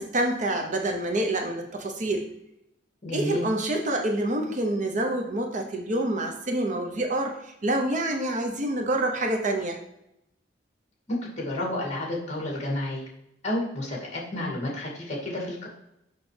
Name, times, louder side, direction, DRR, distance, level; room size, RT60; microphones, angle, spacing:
voice 1, 0.0-2.3 3.1-9.8, right 1 dB, 40° right, 3 dB, 0.7 m, -27 dB
voice 2, 3.0-3.5 11.1-13.1 13.4-15.7, left 1 dB, 35° left, -2 dB, 2.2 m, -31 dB
6.2 x 5.8 x 3.3 m, 0.82 s
head